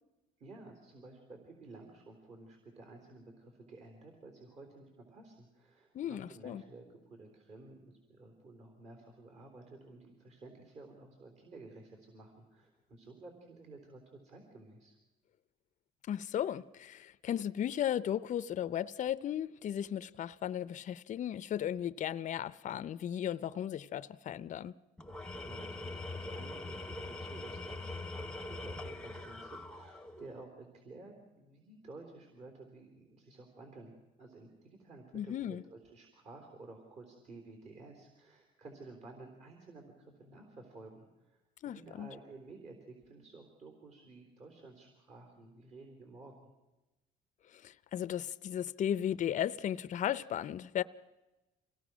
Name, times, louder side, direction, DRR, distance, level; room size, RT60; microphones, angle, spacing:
voice 1, 0.4-15.0 25.4-33.9 34.2-46.5, right 3 dB, 45° right, 3.8 m, -53 dB
voice 2, 5.9-6.6 16.1-24.7 35.1-35.6 41.6-42.1 47.6-50.8, left 10 dB, 45° left, 0.6 m, -35 dB
Tools, 25.0-30.4, left 2 dB, 5° left, 0.9 m, -43 dB
25.5 x 17.0 x 6.2 m
cardioid pair, 110°, 17 cm